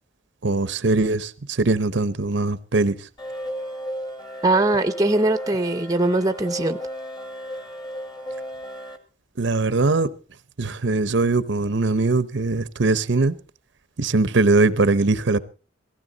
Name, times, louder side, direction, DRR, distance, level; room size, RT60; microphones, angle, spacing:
voice 1, 0.4-3.0 9.4-10.1 10.6-13.3 14.0-15.4, right 3 dB, 65° right, 0.8 m, -21 dB
sound 1, 3.2-9.0, equal, 25° left, 2.0 m, -34 dB
voice 2, 4.4-6.8, right 2 dB, 20° right, 0.8 m, -21 dB
17.5 x 15.5 x 3.9 m
head